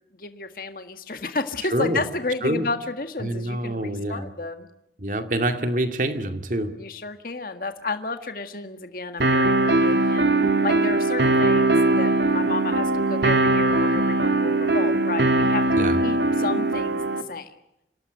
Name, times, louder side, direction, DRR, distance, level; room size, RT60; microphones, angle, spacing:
voice 1, 0.2-4.7 6.8-10.3 10.6-15.6 16.0-17.5, left 3 dB, 50° left, 7 dB, 1.8 m, -31 dB
voice 2, 1.7-2.0 2.4-2.7 3.2-4.3 5.0-6.8 15.8-16.0, right 1 dB, 45° right, 7 dB, 2.3 m, -26 dB
sound 1, 9.2-17.2, right 2 dB, 75° right, 2.0 m, -20 dB
27.5 x 18.0 x 9.3 m, 0.85 s
head